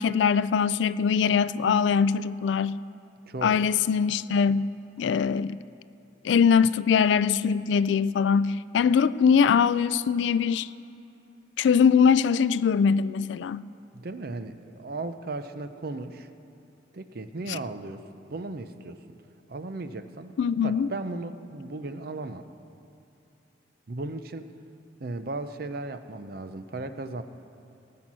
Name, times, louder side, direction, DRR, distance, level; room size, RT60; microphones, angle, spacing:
voice 1, 0.0-2.8 3.4-4.7 5.0-5.6 6.2-10.7 11.6-13.6 17.5-17.6 20.4-20.9, left 6 dB, 80° left, 17 dB, 0.3 m, -22 dB
voice 2, 3.3-3.6 13.9-16.3 16.9-18.0 18.3-19.0 19.5-22.4 23.9-24.5 25.0-27.2, right 2 dB, 55° right, 10 dB, 0.6 m, -36 dB
18.5 x 7.5 x 6.1 m, 2.8 s
head